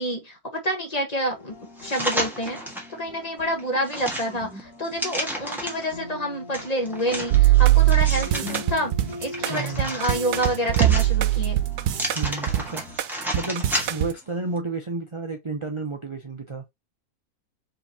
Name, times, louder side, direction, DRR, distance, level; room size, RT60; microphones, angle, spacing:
voice 1, 0.0-1.5 1.8-2.6 2.9-8.9 9.2-11.6, equal, 30° left, 1.2 m, -28 dB
sound 1, 1.2-13.0, left 2 dB, 65° left, 1.8 m, -41 dB
sound 2, 1.8-2.9 3.4-5.9 6.5-8.6 9.1-11.4 11.9-14.2 14.6-14.7, equal, ahead, 1.4 m, -32 dB
sound 3, 7.3-14.1, right 15 dB, 85° right, 1.1 m, -21 dB
voice 2, 9.5-10.0 12.1-12.8 13.3-16.6, right 3 dB, 35° right, 0.4 m, -31 dB
4.7 x 3.7 x 2.8 m
omnidirectional pair, 1.6 m